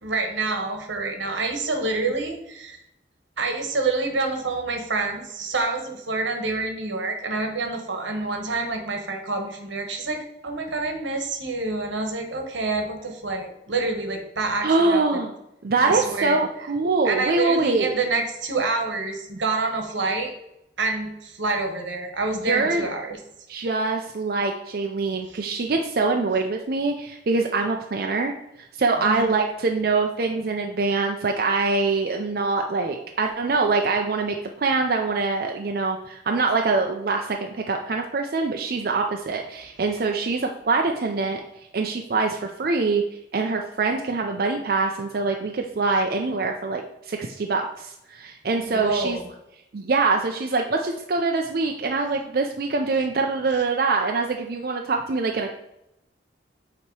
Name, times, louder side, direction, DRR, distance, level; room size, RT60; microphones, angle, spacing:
voice 1, 0.0-2.8 3.4-15.2 15.8-16.4 17.0-20.3 20.8-23.2 25.3-25.4 29.0-29.4 48.7-49.2, right 3 dB, 85° right, 3 dB, 1.2 m, -27 dB
voice 2, 14.6-15.3 15.6-18.0 22.4-22.8 23.5-28.3 28.6-41.4 41.7-43.0 43.3-49.2 49.7-55.5, right 3 dB, 55° right, 2 dB, 0.4 m, -24 dB
8.3 x 2.9 x 4.6 m, 0.83 s
head